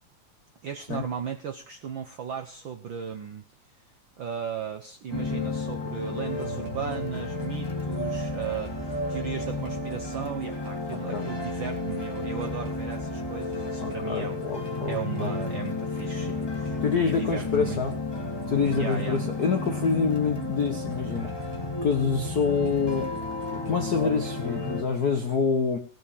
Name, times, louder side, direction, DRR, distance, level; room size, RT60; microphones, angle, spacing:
voice 1, 0.6-3.4 4.2-17.8 18.8-19.2 20.3-20.4, right 7 dB, 70° right, 6 dB, 1.1 m, -36 dB
sound 1, 5.1-24.8, left 2 dB, 15° left, 0.9 m, -32 dB
sound 2, 6.4-24.0, right 4 dB, 50° right, 3.1 m, -48 dB
voice 2, 13.8-15.3 16.8-18.0 18.5-21.3 21.8-23.1 23.5-25.8, left 5 dB, 65° left, 5 dB, 0.9 m, -26 dB
17.5 x 6.2 x 7.0 m, 0.41 s
omnidirectional pair, 3.3 m